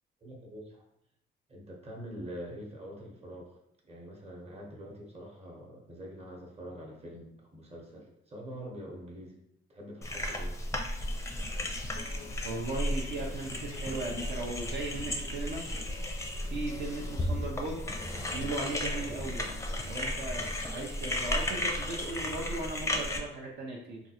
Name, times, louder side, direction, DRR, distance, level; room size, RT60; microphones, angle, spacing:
voice 1, 0.2-0.8 1.5-3.5 3.9-9.4 9.7-10.6, equal, 30° right, -1 dB, 1.0 m, -45 dB
sound 1, 10.0-23.2, left 1 dB, 15° left, 0.5 m, -34 dB
sound 2, 11.9-19.9, left 5 dB, 90° left, 0.5 m, -51 dB
voice 2, 12.4-15.6 16.5-17.8 18.3-19.6 19.8-24.0, right 2 dB, 60° right, -2 dB, 0.7 m, -37 dB
3.5 x 2.4 x 2.9 m, 0.76 s
cardioid pair, 90°, 20 cm